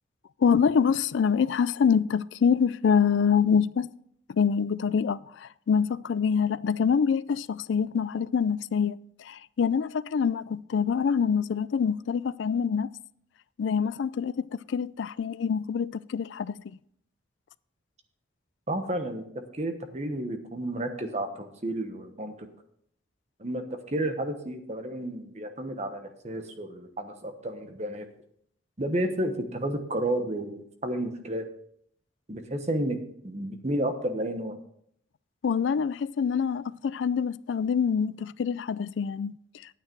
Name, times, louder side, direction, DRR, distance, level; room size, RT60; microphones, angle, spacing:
voice 1, 0.4-3.9 4.3-12.9 13.6-16.5 35.4-39.3, left 6 dB, 75° left, 0.3 m, -25 dB
voice 2, 18.7-22.5 23.4-28.1 28.8-31.5 32.3-33.0 33.2-34.6, right 1 dB, 35° right, 1.1 m, -31 dB
9.5 x 9.2 x 4.6 m
head